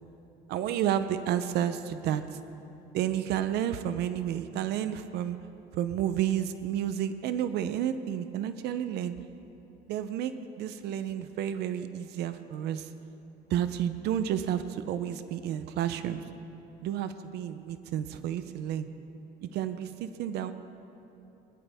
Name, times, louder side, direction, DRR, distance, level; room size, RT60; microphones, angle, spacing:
voice 1, 0.5-2.2 2.9-5.4 5.7-9.2 9.9-12.9 13.5-16.2 16.8-18.9 19.4-20.5, right 10 dB, 80° right, 11 dB, 0.6 m, -31 dB
19.5 x 12.5 x 3.5 m, 2.9 s
cardioid pair, 110°, 17 cm